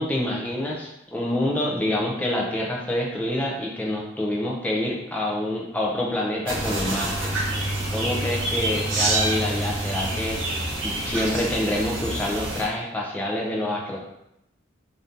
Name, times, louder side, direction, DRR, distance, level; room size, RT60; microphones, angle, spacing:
voice 1, 0.0-7.3 7.6-14.0, left 1 dB, 10° left, -2 dB, 0.5 m, -27 dB
sound 1, 6.5-12.6, right 1 dB, 90° right, 0.9 m, -27 dB
2.6 x 2.6 x 3.5 m, 0.83 s
head